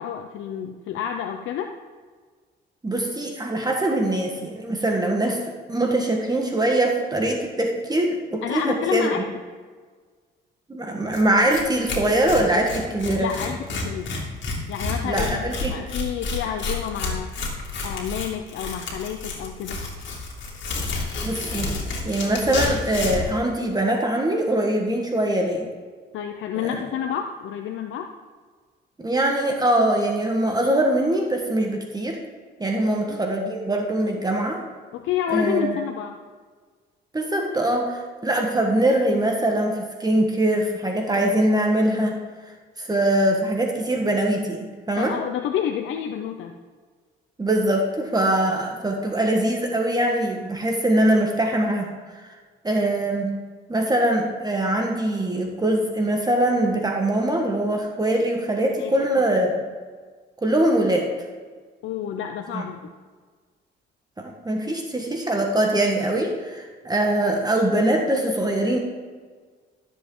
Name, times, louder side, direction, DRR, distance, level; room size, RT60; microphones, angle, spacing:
voice 1, 0.0-1.7 8.4-9.2 13.2-14.1 14.7-17.3 17.8-19.8 26.1-28.1 32.8-33.2 34.9-36.2 45.0-46.6 58.8-58.9 61.8-62.9, left 9 dB, 80° left, 4 dB, 0.7 m, -29 dB
voice 2, 2.8-5.4 5.7-9.1 10.7-13.3 15.0-15.7 21.2-21.7 22.0-25.7 26.6-26.8 29.0-32.2 32.6-34.6 35.3-35.7 37.1-42.2 42.8-45.1 47.4-52.2 52.6-53.3 53.7-59.6 60.4-61.1 62.5-62.6 64.2-68.8, right 1 dB, 20° right, 2 dB, 1.4 m, -22 dB
Tearing, 11.1-11.2 11.5-11.6 11.9-23.3, left 3 dB, 65° left, 2.4 m, -30 dB
13.0 x 7.3 x 3.8 m, 1.5 s
cardioid pair, 90°, 20 cm